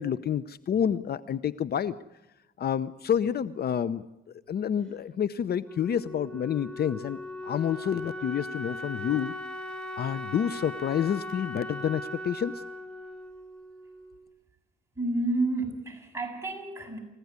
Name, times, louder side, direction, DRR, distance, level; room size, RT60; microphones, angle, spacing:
voice 1, 0.0-1.9 2.6-4.1 4.5-9.3 10.0-12.5, left 8 dB, 55° left, 16 dB, 0.8 m, -29 dB
Wind instrument woodwind instrument, 5.6-14.3, left 1 dB, 5° left, 3.2 m, -39 dB
voice 2, 14.9-17.0, right 2 dB, 15° right, 1 dB, 7.7 m, -30 dB
28.0 x 16.0 x 9.6 m, 0.93 s
cardioid pair, 90°, 20 cm